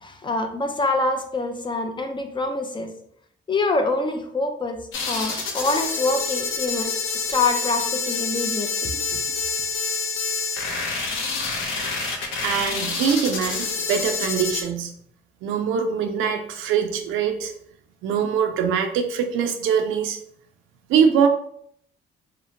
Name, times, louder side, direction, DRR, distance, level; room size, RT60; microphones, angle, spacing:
voice 1, 0.0-2.9 3.5-4.8 5.1-9.2, left 3 dB, 25° left, 5 dB, 0.4 m, -25 dB
sound 1, 4.9-14.6, left 4 dB, 85° left, 0.6 m, -27 dB
voice 2, 12.4-14.9 15.4-17.5 18.0-20.2 20.9-21.3, right 7 dB, 90° right, 5 dB, 0.4 m, -23 dB
2.8 x 2.0 x 2.6 m, 0.67 s
cardioid pair, 90°, 20 cm